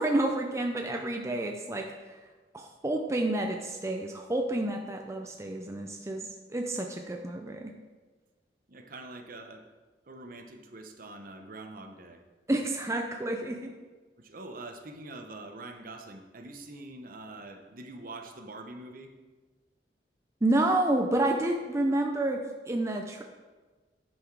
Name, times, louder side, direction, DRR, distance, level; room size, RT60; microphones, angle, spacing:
voice 1, 0.0-1.8 2.1-2.2 2.5-6.2 6.5-7.7 12.5-13.7 20.4-23.2, right 1 dB, 15° right, 2 dB, 0.5 m, -29 dB
voice 2, 8.7-9.7 10.1-12.2 14.2-19.1, right 2 dB, 50° right, 5 dB, 0.9 m, -44 dB
10.5 x 5.9 x 4.7 m, 1.3 s
head